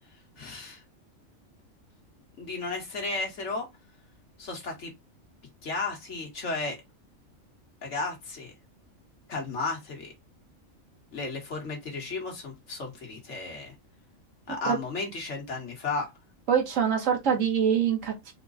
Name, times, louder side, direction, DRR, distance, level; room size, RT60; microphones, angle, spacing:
voice 1, 0.4-0.8 2.4-3.7 4.4-4.9 5.6-6.8 7.8-8.5 9.3-10.1 11.1-13.7 14.5-16.1, left 3 dB, 60° left, 1.8 m, -34 dB
voice 2, 16.5-18.3, right 7 dB, 75° right, 1.5 m, -24 dB
4.5 x 2.3 x 3.9 m
omnidirectional pair, 1.4 m